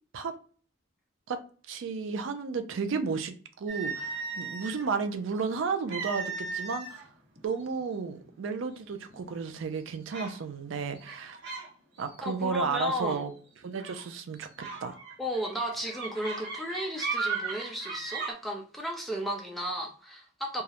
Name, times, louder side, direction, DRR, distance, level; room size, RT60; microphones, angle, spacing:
voice 1, 1.7-7.0 7.4-11.4 12.0-13.3 13.6-15.0, right 5 dB, 75° right, 0.4 m, -33 dB
sound 1, 3.7-4.9 5.9-7.0 7.4-7.6 8.3-8.4 8.9-9.3 10.1-10.4 11.0-11.7 12.0-12.3 13.8-14.0 14.6-18.3, right 4 dB, 60° right, 0.9 m, -36 dB
voice 2, 12.2-13.2 15.2-20.6, equal, ahead, 0.3 m, -34 dB
2.3 x 2.0 x 2.7 m
head